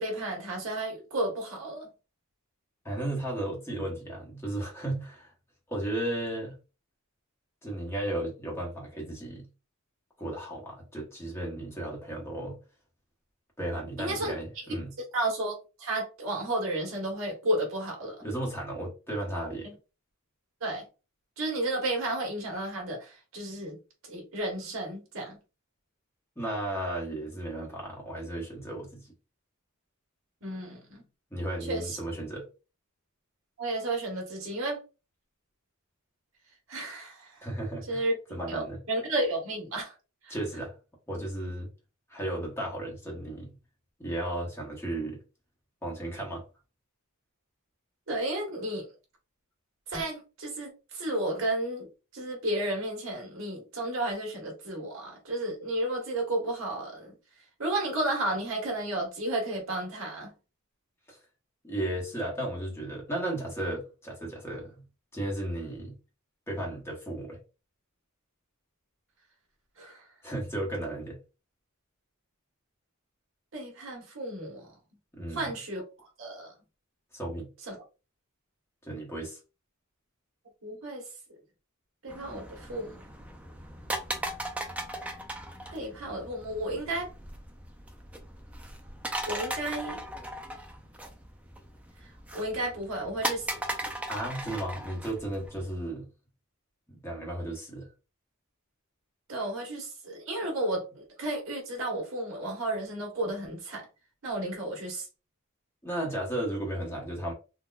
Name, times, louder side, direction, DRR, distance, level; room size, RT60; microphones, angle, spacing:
voice 1, 0.0-1.9 14.0-14.3 15.1-18.2 19.6-19.7 20.6-20.9 21.4-23.8 24.1-25.4 30.4-31.0 31.6-32.0 33.6-34.8 36.7-37.4 37.9-38.2 38.5-39.9 40.2-40.4 48.1-48.9 49.9-51.9 52.1-57.1 57.6-60.3 69.8-70.0 73.5-74.7 75.3-75.8 76.2-76.5 77.7-77.8 80.6-81.0 82.0-83.0 85.7-87.1 89.3-90.0 92.3-93.5 99.3-103.9 104.2-105.1, right 1 dB, 65° right, 1.3 m, -32 dB
voice 2, 2.8-5.3 5.7-6.5 7.6-9.5 10.2-12.6 13.6-14.9 18.2-19.7 26.4-29.1 31.3-32.5 37.4-38.0 38.3-38.8 40.3-40.7 41.1-41.7 42.1-43.5 44.0-45.2 45.8-46.4 61.1-61.2 61.6-64.7 65.1-65.9 66.5-67.4 70.2-71.2 75.1-75.5 77.1-77.5 78.8-79.4 94.1-96.1 96.9-97.9 105.8-107.3, right 1 dB, 10° left, 1.0 m, -34 dB
sound 1, 82.1-95.7, right 1 dB, 5° right, 0.4 m, -38 dB
3.8 x 2.3 x 2.3 m
head